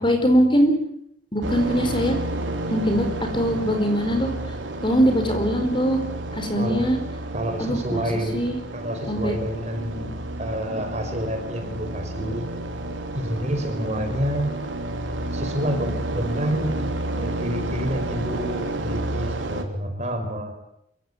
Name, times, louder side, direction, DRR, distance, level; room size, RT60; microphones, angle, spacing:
voice 1, 0.0-0.7 1.3-2.1 2.7-3.1 3.3-4.3 4.8-6.0 6.3-7.0 7.6-8.0 8.3-8.6 9.1-9.3, equal, 25° left, 6 dB, 4.5 m, -21 dB
sound 1, 1.4-19.6, right 1 dB, 90° right, 3.5 m, -31 dB
voice 2, 6.6-6.9 7.3-8.4 8.7-12.4 13.1-14.6 15.3-16.9 17.2-20.5, equal, 35° right, 5 dB, 5.1 m, -28 dB
27.0 x 16.5 x 9.7 m, 0.74 s
head